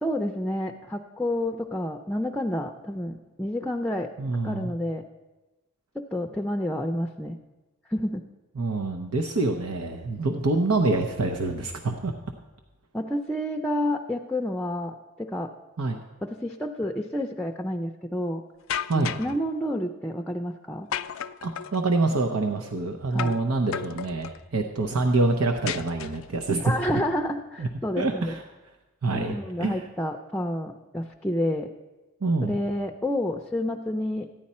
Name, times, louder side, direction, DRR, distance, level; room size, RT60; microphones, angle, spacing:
voice 1, 0.0-4.1 4.4-5.0 5.9-7.4 7.9-8.2 12.9-15.5 16.2-18.4 18.9-20.9 23.1-23.4 26.6-28.3 29.1-31.7 32.4-34.3, left 1 dB, 5° left, 4 dB, 0.4 m, -29 dB
voice 2, 4.2-4.7 8.6-12.1 15.8-16.0 18.8-19.2 21.4-26.7 27.6-27.7 28.0-28.4 29.0-29.8 32.2-32.6, right 3 dB, 90° right, 3 dB, 0.8 m, -26 dB
sound 1, 18.7-19.4 20.9-21.8 23.2-23.5 23.7-24.4 25.7-26.4, left 8 dB, 65° left, 0.4 m, -33 dB
14.5 x 10.5 x 4.3 m, 1.1 s
head